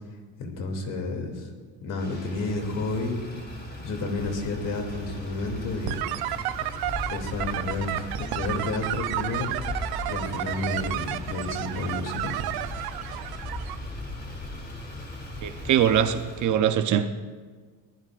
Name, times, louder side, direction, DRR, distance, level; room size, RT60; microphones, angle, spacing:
voice 1, 0.4-1.5 1.8-3.2 3.8-6.3 7.1-12.3, left 2 dB, 60° left, 2 dB, 2.8 m, -31 dB
Motor vehicle (road), 1.9-16.5, left 1 dB, 25° left, 3.8 m, -38 dB
sound 1, 5.9-13.8, right 14 dB, 85° right, 0.7 m, -32 dB
voice 2, 15.4-17.1, right 9 dB, 55° right, 9 dB, 0.8 m, -22 dB
23.5 x 20.0 x 2.5 m, 1.5 s
cardioid pair, 160°, 36 cm